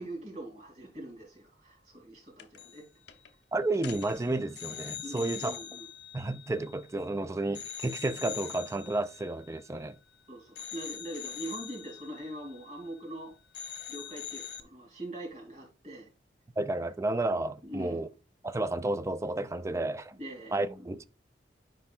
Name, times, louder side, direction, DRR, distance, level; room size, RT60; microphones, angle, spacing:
voice 1, 0.0-2.9 5.0-5.8 10.3-16.1 17.6-18.1 20.1-20.8, right 1 dB, 40° right, 3.0 m, -42 dB
sound 1, 2.4-2.8 3.1-3.3 3.7-7.1 7.6-10.2 10.6-13.2 13.5-14.6, left 10 dB, 65° left, 0.7 m, -44 dB
voice 2, 3.5-5.6 6.1-10.0 16.6-18.1 18.4-20.1 20.5-21.0, right 2 dB, 15° right, 0.4 m, -31 dB
9.6 x 4.6 x 2.4 m
head